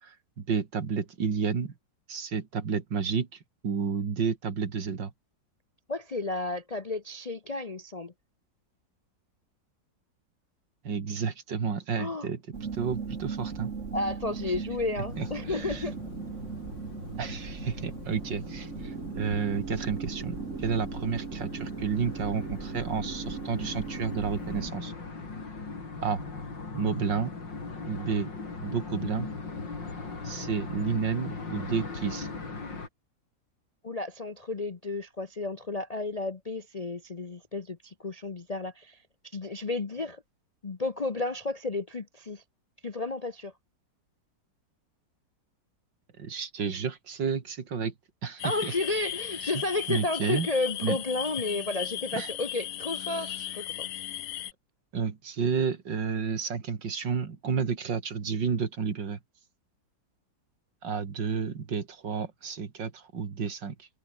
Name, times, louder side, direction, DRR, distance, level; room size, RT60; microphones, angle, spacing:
voice 1, 0.0-1.7 2.1-3.3 3.6-5.1 10.8-13.7 15.2-15.8 17.2-24.9 26.0-26.2 26.7-27.3 27.9-28.3 28.6-29.3 30.2-32.3 46.2-47.9 48.2-48.7 49.4-49.5 49.9-50.5 50.8-51.0 52.1-52.3 53.1-53.4 54.9-59.2 60.8-63.9, right 6 dB, 80° right, 2.9 m, -31 dB
voice 2, 5.9-8.1 12.0-12.3 13.9-15.9 33.8-39.0 39.3-40.2 40.6-42.4 42.8-43.5 48.4-53.9, left 2 dB, 40° left, 0.6 m, -32 dB
sound 1, 12.5-24.7, right 5 dB, 45° right, 1.9 m, -38 dB
sound 2, 15.1-32.9, left 4 dB, 80° left, 4.6 m, -40 dB
sound 3, 48.4-54.5, left 12 dB, 65° left, 0.9 m, -36 dB
omnidirectional pair, 1.9 m